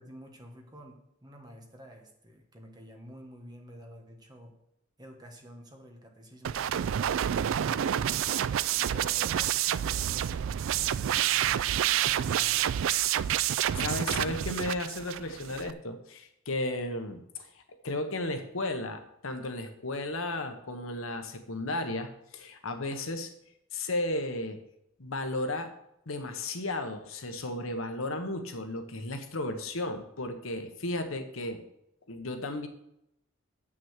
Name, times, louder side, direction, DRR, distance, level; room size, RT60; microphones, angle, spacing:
voice 1, 0.0-4.6 5.0-8.2 8.8-11.5 12.0-13.0, equal, 20° right, 2 dB, 1.3 m, -50 dB
sound 1, 6.4-15.7, right 10 dB, 65° right, 0.3 m, -28 dB
voice 2, 13.8-23.3 23.7-24.6 25.0-25.7 26.1-31.6 32.1-32.7, left 2 dB, 70° left, 7 dB, 1.1 m, -34 dB
7.9 x 6.2 x 7.3 m, 0.79 s
head